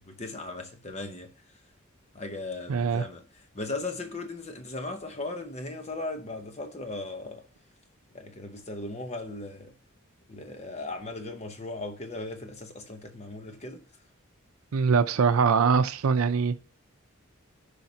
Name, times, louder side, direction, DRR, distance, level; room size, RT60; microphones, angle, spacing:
voice 1, 0.1-1.3 2.1-3.2 3.5-7.4 8.1-9.7 10.3-13.8, left 2 dB, 30° left, 0.9 m, -37 dB
voice 2, 2.7-3.1 14.7-16.6, right 5 dB, 85° right, 0.5 m, -23 dB
15.0 x 4.9 x 2.8 m
head